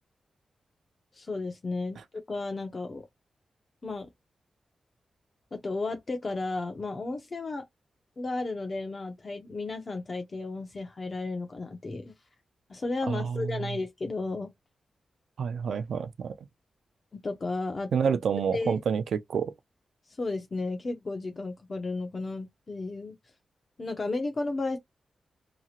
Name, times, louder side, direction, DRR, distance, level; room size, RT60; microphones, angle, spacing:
voice 1, 1.1-2.0 2.3-3.1 3.8-4.1 5.5-7.6 8.2-12.1 12.7-14.5 17.1-17.9 18.5-18.8 20.2-23.2 23.8-24.8, left 3 dB, 35° left, 0.6 m, -33 dB
voice 2, 13.1-13.6 15.4-16.3 17.9-19.5, right 6 dB, 85° right, 0.4 m, -28 dB
2.8 x 2.7 x 2.4 m
wide cardioid pair, 140°, 0 cm